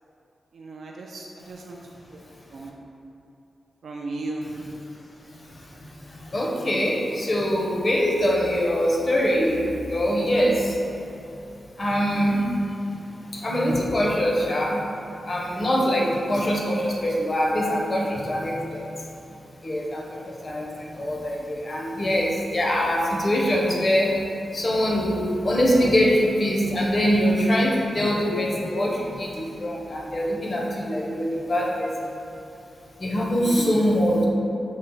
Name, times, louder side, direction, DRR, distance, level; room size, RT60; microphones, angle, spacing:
voice 1, 0.5-1.8 2.5-2.7 3.8-4.5 33.4-33.8, right 2 dB, 70° right, -1 dB, 0.3 m, -34 dB
voice 2, 4.4-4.8 5.4-10.8 11.8-14.9 15.2-19.1 19.6-24.2 24.5-32.2 33.0-34.3, equal, 40° left, -2 dB, 0.6 m, -24 dB
5.4 x 2.0 x 3.9 m, 2.8 s
wide cardioid pair, 100°, 0 cm